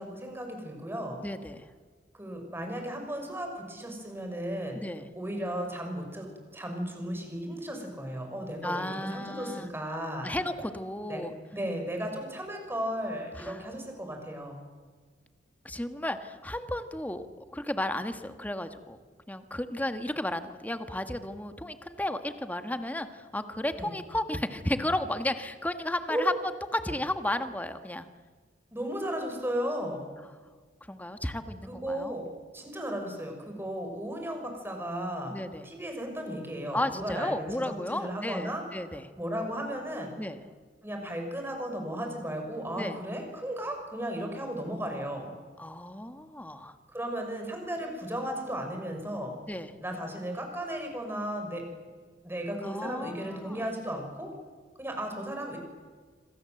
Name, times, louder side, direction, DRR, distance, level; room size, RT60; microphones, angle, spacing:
voice 1, 0.0-1.2 2.1-4.8 5.2-10.3 11.1-14.6 23.8-23.9 26.1-26.3 28.7-30.1 31.7-35.3 35.6-38.6 39.2-40.1 40.8-45.3 46.9-49.4 49.8-51.7 52.2-54.3 54.8-55.6, equal, 15° right, 3 dB, 5.9 m, -35 dB
voice 2, 1.2-1.7 4.7-5.0 8.6-9.7 10.2-11.3 13.4-13.6 15.6-17.3 17.5-19.0 19.3-26.3 26.7-28.1 30.9-32.2 35.3-35.7 36.7-39.1 40.2-40.4 42.7-43.0 45.6-46.8 49.5-49.7 52.6-53.6, left 1 dB, 10° left, 8 dB, 1.5 m, -33 dB
27.0 x 25.5 x 7.9 m, 1.5 s
head